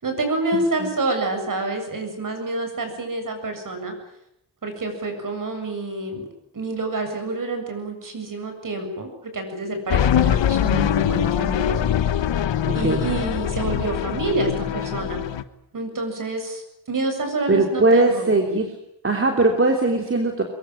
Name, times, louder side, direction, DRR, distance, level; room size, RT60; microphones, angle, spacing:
voice 1, 0.0-4.0 4.6-6.2 6.5-11.8 12.1-12.2 12.7-15.2 15.7-16.6 16.9-18.3, right 2 dB, 45° right, 6 dB, 7.6 m, -27 dB
sound 1, 9.9-15.4, left 10 dB, 85° left, 1.4 m, -22 dB
voice 2, 12.7-13.0 17.5-18.7 19.0-20.4, right 2 dB, 30° right, 3 dB, 3.2 m, -19 dB
23.0 x 23.0 x 9.2 m, 0.80 s
wide cardioid pair, 130°, 43 cm